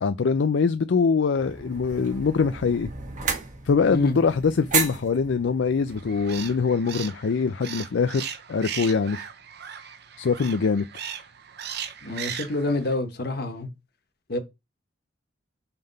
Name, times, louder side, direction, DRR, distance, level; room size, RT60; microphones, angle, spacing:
voice 1, 0.0-2.9 3.6-9.3 10.2-10.8, left 5 dB, 75° left, 0.4 m, -23 dB
sound 1, 1.3-6.7, right 5 dB, 45° right, 1.5 m, -33 dB
sound 2, 5.9-12.9, right 8 dB, 65° right, 0.8 m, -38 dB
voice 2, 12.0-13.7 14.3-14.4, left 2 dB, 60° left, 1.2 m, -27 dB
5.8 x 3.4 x 5.3 m
head